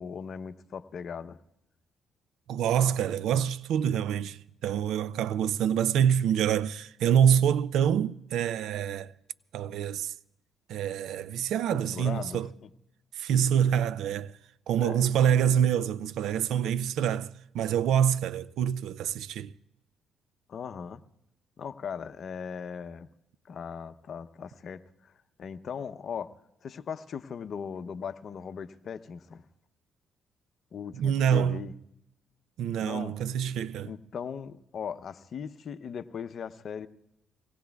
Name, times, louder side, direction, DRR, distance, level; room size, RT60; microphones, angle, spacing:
voice 1, 0.0-1.4 11.7-12.7 14.8-15.0 20.5-21.0 21.6-23.1 23.5-25.1 25.4-26.3 26.6-29.4 30.7-31.7 32.8-33.1 33.8-36.9, left 7 dB, 55° left, 0.7 m, -38 dB
voice 2, 2.5-9.1 9.5-10.1 10.7-12.5 13.2-14.3 14.7-19.5 30.9-31.6 32.6-33.9, right 9 dB, 80° right, 0.4 m, -26 dB
25.0 x 18.5 x 2.3 m
cardioid pair, 90°, 0 cm